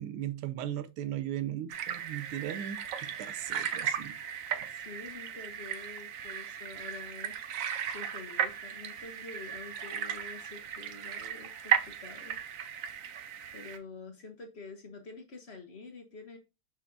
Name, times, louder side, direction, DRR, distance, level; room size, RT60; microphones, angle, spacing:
voice 1, 0.0-4.2, right 11 dB, 90° right, 1.6 m, -37 dB
sound 1, 1.7-13.8, right 8 dB, 70° right, 0.8 m, -36 dB
voice 2, 4.7-7.4 7.9-13.0 13.5-16.4, left 4 dB, 45° left, 0.9 m, -48 dB
6.5 x 5.7 x 2.6 m
omnidirectional pair, 2.3 m